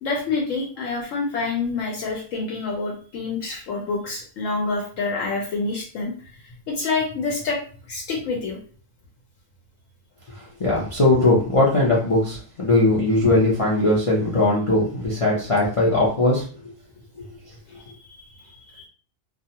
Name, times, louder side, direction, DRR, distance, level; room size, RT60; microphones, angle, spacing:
voice 1, 0.0-6.1 6.4-7.6 7.9-8.6 17.7-17.8 18.7-18.9, left 3 dB, 70° left, 0 dB, 0.9 m, -27 dB
voice 2, 10.3-16.4, left 2 dB, 40° left, -5 dB, 0.4 m, -19 dB
2.4 x 2.3 x 2.8 m, 0.42 s
omnidirectional pair, 1.5 m